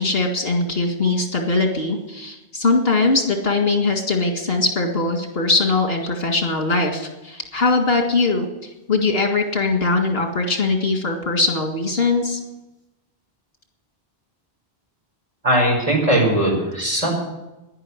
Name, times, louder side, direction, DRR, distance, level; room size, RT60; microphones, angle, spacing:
voice 1, 0.0-12.4, left 3 dB, 70° left, 3 dB, 2.2 m, -21 dB
voice 2, 15.4-17.1, right 1 dB, 35° right, -2 dB, 5.3 m, -19 dB
11.0 x 10.5 x 9.7 m, 1.0 s
omnidirectional pair, 1.0 m